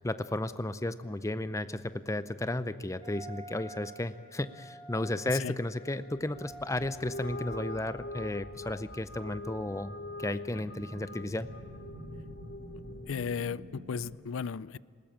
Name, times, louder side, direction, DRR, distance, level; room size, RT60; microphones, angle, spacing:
voice 1, 0.0-11.5, left 1 dB, 15° left, 0.5 m, -34 dB
Wind instrument woodwind instrument, 3.0-8.3, right 1 dB, 20° right, 4.2 m, -50 dB
sound 1, 6.5-14.1, equal, 55° right, 6.7 m, -49 dB
sound 2, 7.0-13.5, left 2 dB, 50° left, 0.9 m, -44 dB
voice 2, 13.1-14.8, left 6 dB, 70° left, 0.4 m, -35 dB
20.5 x 19.0 x 8.7 m
head